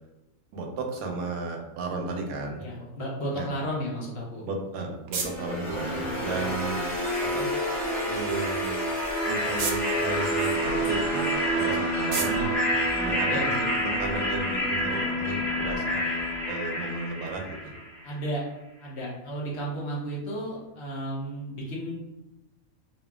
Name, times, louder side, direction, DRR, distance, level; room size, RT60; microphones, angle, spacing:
voice 1, 0.5-2.6 3.3-3.5 4.4-6.9 7.2-7.5 8.1-8.8 9.2-12.5 13.0-16.0 16.5-17.6, right 3 dB, 90° right, 3 dB, 1.0 m, -33 dB
voice 2, 2.6-4.5 6.0-6.5 12.8-13.5 18.0-18.4 18.8-21.9, right 1 dB, 55° left, -4 dB, 0.9 m, -34 dB
sound 1, 4.3-13.7, right 5 dB, 65° right, 0.6 m, -40 dB
sound 2, 5.2-18.1, equal, ahead, 0.9 m, -28 dB
2.7 x 2.7 x 2.3 m, 0.95 s
omnidirectional pair, 1.5 m